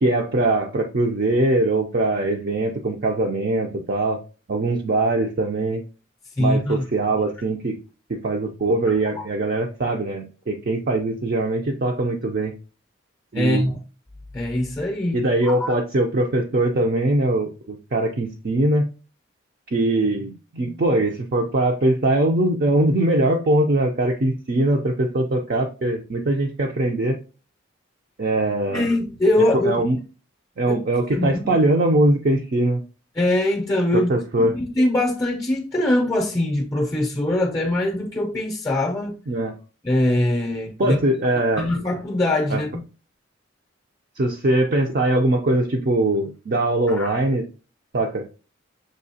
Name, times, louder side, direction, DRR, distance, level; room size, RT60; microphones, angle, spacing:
voice 1, 0.0-4.2 4.5-5.8 6.4-7.7 8.1-12.5 13.3-13.6 15.1-18.9 19.7-27.2 28.2-28.9 29.4-30.0 30.6-32.8 33.9-34.5 39.3-39.5 40.8-41.7 42.5-42.6 44.2-47.4 47.9-48.3, right 2 dB, 50° right, 0.5 m, -21 dB
voice 2, 6.4-6.9 13.3-13.7 14.3-15.7 28.7-29.9 30.7-30.8 31.1-31.6 33.2-34.2 34.4-39.2 39.8-41.0 41.6-42.8 46.9-47.2, left 1 dB, 15° left, 0.5 m, -22 dB
6.5 x 2.8 x 2.7 m
head